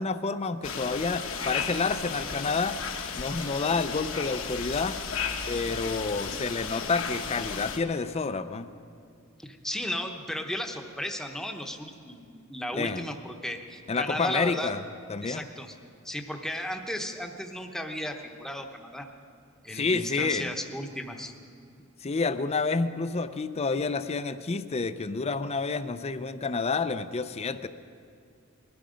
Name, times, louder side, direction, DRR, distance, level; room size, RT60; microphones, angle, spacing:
voice 1, 0.0-2.8 3.2-5.0 5.5-8.7 12.7-13.1 13.9-14.8 15.1-15.4 19.7-20.5 22.0-27.7, left 4 dB, 30° left, 11 dB, 0.5 m, -29 dB
sound 1, 0.6-7.8, left 6 dB, 65° left, 1.2 m, -34 dB
voice 2, 9.4-14.7 15.2-15.7 16.0-19.1 19.6-21.3, equal, ahead, 4 dB, 0.9 m, -35 dB
20.0 x 13.0 x 5.1 m, 2.4 s
head